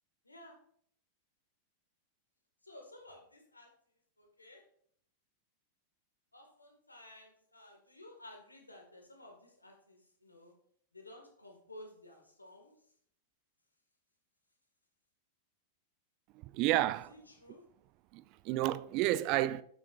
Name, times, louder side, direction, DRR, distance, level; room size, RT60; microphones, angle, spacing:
voice 1, 2.6-3.7 4.2-4.6 6.3-10.5 10.9-12.7 17.1-17.6, left 1 dB, 85° left, 2.0 m, -54 dB
voice 2, 16.3-17.1 18.1-19.6, right 15 dB, 40° right, 0.4 m, -31 dB
8.6 x 8.6 x 2.6 m
figure-of-eight pair, 90°, 0 cm